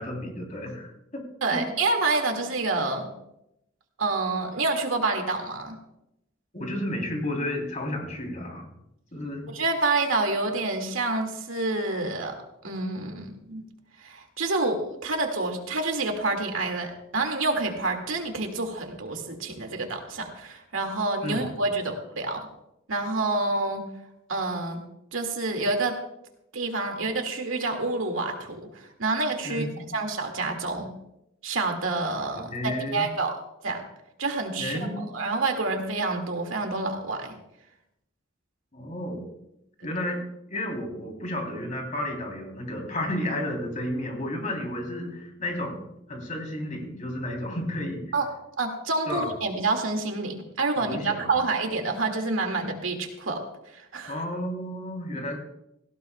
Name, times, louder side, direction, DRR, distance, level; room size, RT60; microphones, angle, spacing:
voice 1, 0.0-1.2 1.5-1.6 6.5-8.7 9.1-9.5 21.2-21.4 29.4-29.8 32.5-33.1 34.6-35.1 38.7-39.3 39.8-40.2 40.5-45.8 46.1-48.0 49.1-49.3 50.8-51.3 54.1-55.4, left 1 dB, 40° left, 1 dB, 3.2 m, -32 dB
voice 2, 1.4-3.1 4.0-5.8 9.5-12.3 12.6-13.6 14.0-22.4 22.9-23.8 24.3-24.8 25.1-26.0 26.5-30.9 31.4-33.3 33.6-33.8 34.2-37.3 48.1-48.3 48.6-53.4 53.7-54.2, right 3 dB, 80° right, 4 dB, 2.1 m, -28 dB
18.0 x 15.5 x 2.3 m, 0.83 s
head